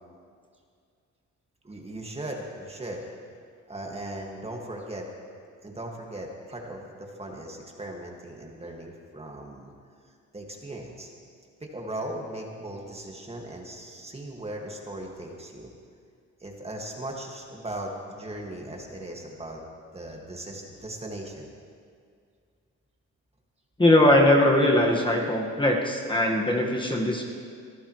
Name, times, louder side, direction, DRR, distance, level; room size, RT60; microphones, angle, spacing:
voice 1, 1.6-3.0 3.7-5.1 5.6-9.7 10.3-11.1 11.6-15.7 16.4-19.6 19.9-21.5, right 1 dB, 20° right, 0 dB, 2.1 m, -38 dB
voice 2, 23.8-27.2, left 1 dB, 15° left, -1 dB, 1.7 m, -21 dB
23.0 x 14.0 x 3.3 m, 2.2 s
cardioid pair, 90°, 30 cm